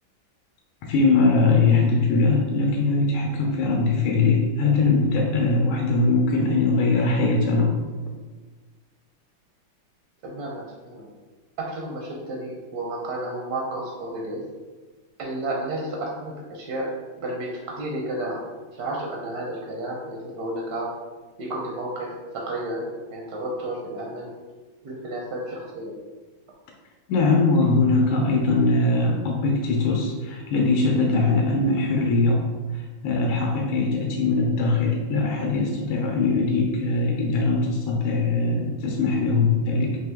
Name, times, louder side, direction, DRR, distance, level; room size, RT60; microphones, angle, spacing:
voice 1, 0.8-7.8 27.1-32.5 32.7-40.0, left 3 dB, 85° left, 0 dB, 1.4 m, -21 dB
voice 2, 10.2-11.1 11.6-14.4 15.2-16.9 17.2-18.4 18.8-20.9 21.4-24.3 24.8-25.9, right 1 dB, 70° right, -2 dB, 0.9 m, -32 dB
4.3 x 2.8 x 3.4 m, 1.3 s
omnidirectional pair, 2.2 m